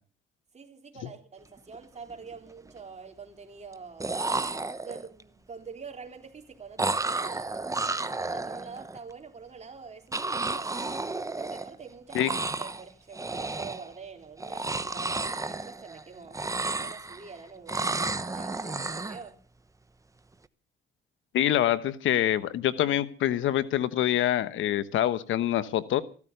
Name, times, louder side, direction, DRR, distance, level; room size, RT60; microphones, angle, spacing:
voice 1, 0.5-4.2 4.8-7.5 7.8-10.8 11.4-16.4 16.8-17.9 18.3-19.4, right 5 dB, 35° right, 3.6 m, -45 dB
sound 1, 1.6-1.8 2.1-2.7 3.7-3.8 4.0-5.2 6.8-9.0 10.1-11.8 12.1-12.8 13.1-13.9 14.4-16.0 16.3-17.3 17.7-19.2, right 3 dB, 15° right, 0.9 m, -32 dB
voice 2, 21.3-26.0, left 12 dB, 80° left, 1.1 m, -25 dB
15.0 x 13.5 x 6.7 m
cardioid pair, 90°, 20 cm